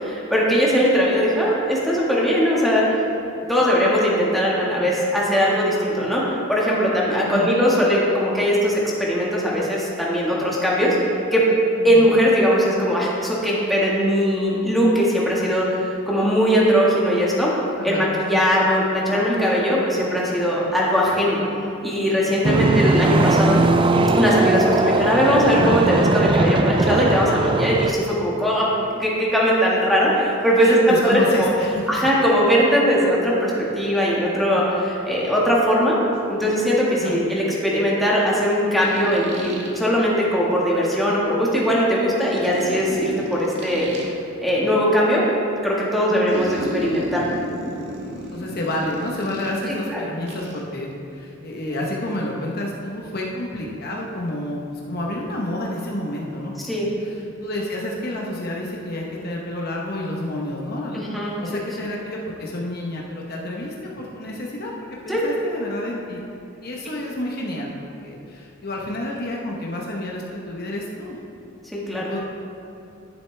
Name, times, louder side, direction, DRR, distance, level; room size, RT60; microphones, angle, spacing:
voice 1, 0.0-3.1 3.5-11.0 11.3-11.4 11.8-17.5 17.8-21.4 21.8-23.7 24.1-30.8 31.0-31.5 31.9-36.0 36.3-44.1 44.4-45.3 45.6-47.3 49.7-50.1 56.6-56.9 60.9-61.6 65.1-65.3 71.7-72.1, equal, ahead, -6 dB, 1.7 m, -20 dB
voice 2, 7.2-7.6 11.8-12.1 17.8-18.1 22.5-22.9 30.6-32.1 36.9-37.2 46.0-46.3 48.3-64.7 65.0-66.2 66.6-71.2 71.9-72.2, left 1 dB, 50° left, -2 dB, 1.0 m, -29 dB
sound 1, 22.4-27.9, right 3 dB, 25° right, 0.3 m, -19 dB
sound 2, 36.1-36.2 38.7-39.8 42.3-44.1 46.3-49.7 50.3-50.6, right 1 dB, 60° right, 1.5 m, -32 dB
10.5 x 10.5 x 3.4 m, 2.7 s
head